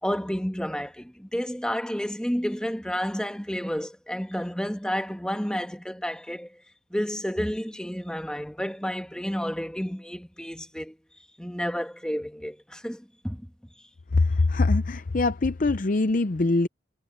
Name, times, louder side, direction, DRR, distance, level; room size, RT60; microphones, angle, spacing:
voice 1, 0.0-6.6 6.9-11.0 11.4-13.5, equal, 5° left, 1.5 m, -31 dB
voice 2, 14.2-16.7, left 3 dB, 45° left, 0.6 m, -23 dB
head